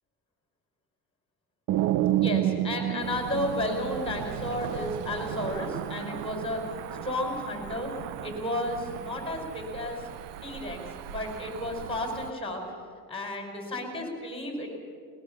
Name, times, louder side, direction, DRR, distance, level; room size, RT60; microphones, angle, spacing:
sound 1, 1.7-4.5, right 13 dB, 45° right, 0.6 m, -27 dB
voice 1, 2.2-6.6 7.0-7.9 8.2-10.0 10.4-10.8 11.1-12.6 13.1-14.8, left 1 dB, 10° left, 3 dB, 5.4 m, -32 dB
Cricket / Motor vehicle (road), 3.0-12.3, right 11 dB, 60° right, 1.0 m, -39 dB
21.5 x 20.5 x 6.9 m, 2.2 s
supercardioid pair, 115°, 48 cm